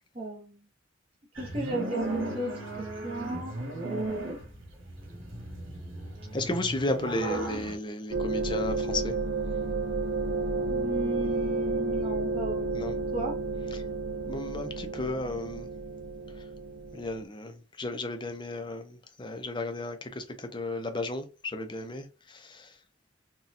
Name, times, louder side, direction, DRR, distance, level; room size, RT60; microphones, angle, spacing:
voice 1, 0.1-0.6 1.4-2.5 3.0-4.2 10.7-12.7 13.1-13.4, right 2 dB, 30° right, 0.7 m, -35 dB
sound 1, 1.4-7.8, right 2 dB, 90° right, 1.3 m, -35 dB
voice 2, 6.3-9.1 12.7-12.9 14.3-15.7 16.9-22.7, left 2 dB, 25° left, 0.5 m, -34 dB
sound 2, 8.1-17.2, right 3 dB, 70° right, 0.5 m, -31 dB
4.0 x 2.3 x 2.6 m
head